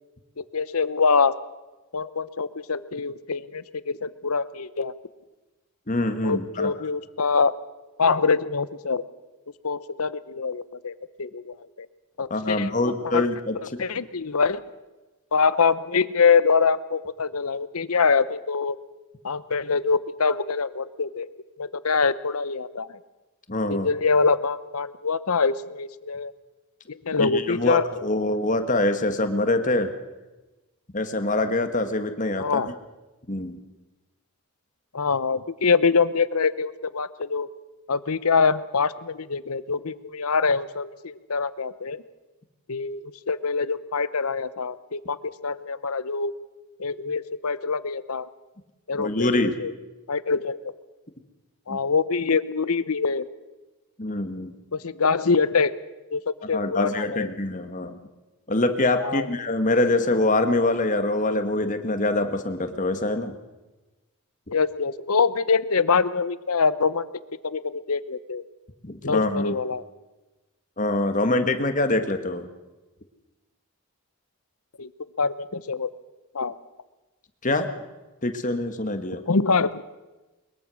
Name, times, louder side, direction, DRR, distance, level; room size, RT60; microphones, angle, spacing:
voice 1, 0.4-1.3 1.9-4.9 6.2-7.5 8.0-9.0 9.6-10.9 11.2-11.9 12.2-13.3 13.8-14.6 15.3-18.8 19.2-21.3 21.6-23.0 23.7-26.3 26.9-27.9 32.4-32.7 34.9-37.5 37.9-42.0 42.7-43.0 43.3-46.3 46.8-48.3 48.9-49.7 50.1-50.6 51.7-53.3 54.7-55.7 56.1-57.3 59.0-59.3 64.5-67.0 67.4-68.4 69.0-69.8 74.8-74.9 75.2-75.9 76.3-76.5 79.3-79.8, left 5 dB, 75° left, 15 dB, 0.9 m, -24 dB
voice 2, 5.9-6.7 12.3-13.6 23.5-23.9 27.2-29.9 30.9-32.6 33.3-33.6 49.0-49.6 51.7-51.8 54.0-54.6 56.5-58.0 58.5-63.4 68.8-69.5 70.8-72.5 77.4-77.7 78.2-79.2, left 2 dB, 35° left, 8 dB, 1.6 m, -24 dB
22.0 x 21.5 x 6.4 m, 1.1 s
head